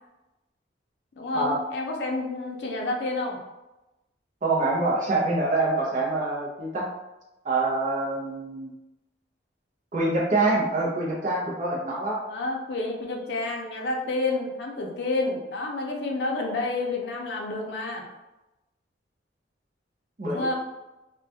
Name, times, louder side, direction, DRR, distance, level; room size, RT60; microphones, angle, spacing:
voice 1, 1.2-3.4 12.3-18.0 20.3-20.5, left 2 dB, 65° left, 1 dB, 0.5 m, -29 dB
voice 2, 4.4-6.9 7.4-8.7 9.9-12.2 20.2-20.5, right 2 dB, 45° right, -3 dB, 0.6 m, -25 dB
2.3 x 2.1 x 2.7 m, 0.99 s
head